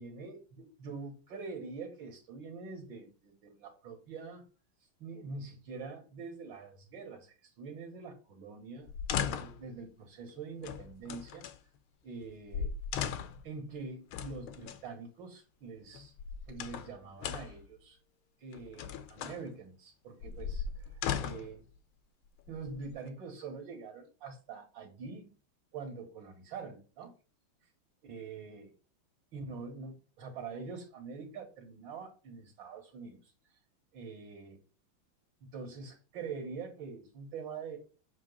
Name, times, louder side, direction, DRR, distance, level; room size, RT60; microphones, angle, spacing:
voice 1, 0.0-4.4 5.0-8.9 9.2-11.4 12.0-12.7 13.4-16.1 16.5-18.0 18.4-21.6 22.5-25.3 25.7-27.1 28.0-28.7 29.3-33.3 33.9-34.6 35.4-37.8, right 4 dB, 70° right, 1 dB, 2.0 m, -45 dB
sound 1, 8.9-9.7 10.6-11.6 12.2-12.3 12.5-13.5 14.1-14.8 15.9-16.9 17.2-17.6 18.5-19.4 20.2-21.6 22.4-23.1, left 8 dB, 90° left, 1.5 m, -37 dB
7.4 x 3.0 x 5.3 m, 0.35 s
omnidirectional pair, 2.2 m